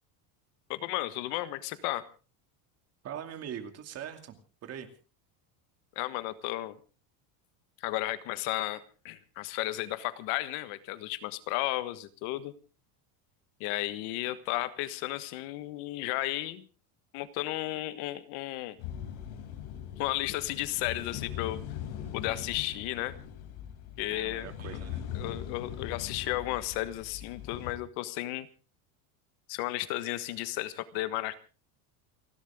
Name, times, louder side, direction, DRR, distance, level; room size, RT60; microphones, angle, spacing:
voice 1, 0.7-2.0 5.9-6.8 7.8-12.5 13.6-16.6 17.1-18.8 20.0-21.6 22.1-23.2 24.0-24.5 25.1-28.5 29.5-31.3, left 16 dB, 60° left, 13 dB, 1.5 m, -33 dB
voice 2, 3.0-4.9 24.1-25.1, right 9 dB, 35° right, 7 dB, 2.6 m, -42 dB
sound 1, 18.8-27.7, left 9 dB, 75° left, 4.1 m, -41 dB
29.5 x 12.0 x 3.7 m, 0.36 s
cardioid pair, 165°, 45 cm